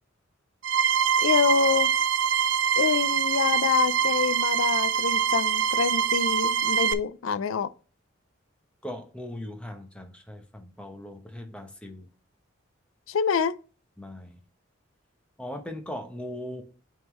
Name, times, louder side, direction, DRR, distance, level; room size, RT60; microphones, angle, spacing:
sound 1, 0.6-6.9, right 8 dB, 65° right, 0.5 m, -24 dB
voice 1, 1.2-1.9 2.8-7.7 13.1-13.5, left 6 dB, 90° left, 0.4 m, -26 dB
voice 2, 8.8-12.1 14.0-14.4 15.4-16.6, left 1 dB, 5° left, 0.8 m, -39 dB
9.2 x 3.7 x 3.1 m
head